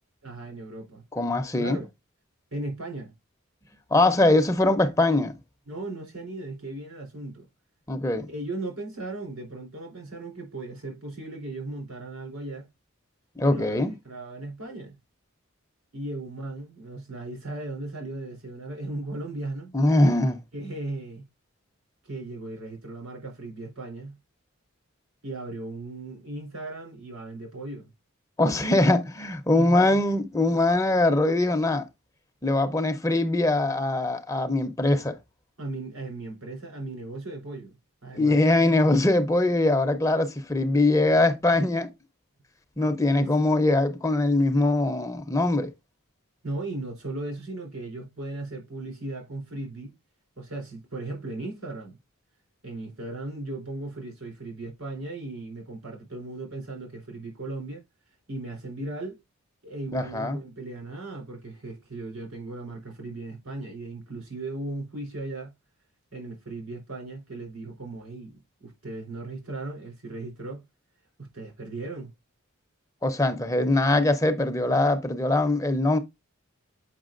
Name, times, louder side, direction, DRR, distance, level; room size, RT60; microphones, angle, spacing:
voice 1, 0.2-1.0 1.6-1.9 2.5-3.1 5.7-7.5 8.3-12.7 13.4-15.0 15.9-19.7 20.5-21.2 22.0-24.2 25.2-27.9 29.5-30.0 35.6-37.7 38.0-38.4 43.1-43.3 46.4-49.9 50.4-52.0 52.6-57.8 58.3-59.2 59.6-65.5 66.1-70.6 71.2-72.1, right 2 dB, 90° right, 3.7 m, -37 dB
voice 2, 1.1-1.8 3.9-5.3 7.9-8.3 13.4-13.9 19.7-20.4 28.4-31.9 32.4-35.2 38.1-41.9 42.8-45.7 59.9-60.4 73.0-76.0, left 2 dB, 15° left, 0.6 m, -22 dB
7.3 x 5.5 x 2.5 m
head